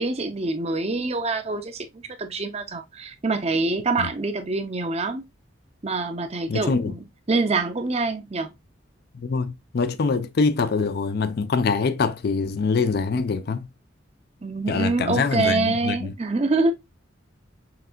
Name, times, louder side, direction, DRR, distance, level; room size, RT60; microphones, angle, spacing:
voice 1, 0.0-5.2 5.8-7.0 7.3-8.5 14.4-16.7, right 3 dB, 30° right, 0.6 m, -25 dB
voice 2, 6.5-6.9 9.1-13.7 14.7-16.1, left 4 dB, 50° left, 0.4 m, -24 dB
5.7 x 2.6 x 2.4 m
head